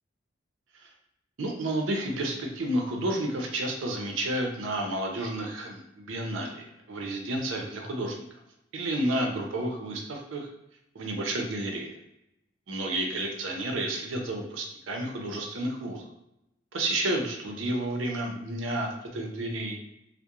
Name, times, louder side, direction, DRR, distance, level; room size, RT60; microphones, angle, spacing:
voice 1, 1.4-8.2 8.7-10.5 10.9-11.9 12.7-16.1 16.7-19.8, right 1 dB, 80° right, 2 dB, 0.5 m, -31 dB
2.3 x 2.0 x 2.9 m, 0.84 s
head